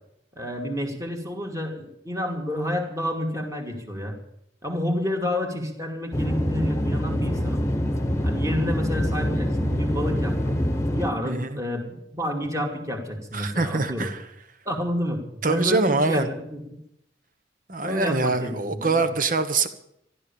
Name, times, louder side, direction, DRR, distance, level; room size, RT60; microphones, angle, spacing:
voice 1, 0.4-4.2 4.6-7.6 8.2-10.6 10.9-14.1 14.6-16.6 17.8-19.0, equal, 20° right, 2 dB, 2.6 m, -29 dB
sound 1, 6.1-11.1, equal, 15° left, 1.2 m, -25 dB
voice 2, 11.2-11.6 13.3-14.2 15.4-16.3 17.7-19.7, right 3 dB, 50° right, 10 dB, 1.2 m, -24 dB
14.0 x 12.0 x 7.1 m, 0.78 s
head